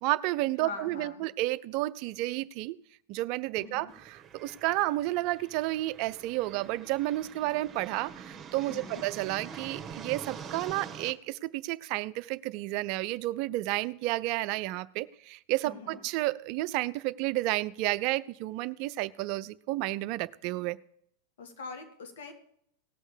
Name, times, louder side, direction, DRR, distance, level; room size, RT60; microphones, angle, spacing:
voice 1, 0.0-2.8 3.1-20.8, right 18 dB, 50° right, 16 dB, 0.4 m, -31 dB
voice 2, 0.6-1.3 3.6-3.9 8.7-9.1 15.6-16.0 21.4-22.3, left 4 dB, 75° left, 5 dB, 1.8 m, -43 dB
sound 1, 3.9-11.1, right 6 dB, 25° right, 1.3 m, -45 dB
17.5 x 6.4 x 5.0 m, 0.69 s
hypercardioid pair, 100°, 0 cm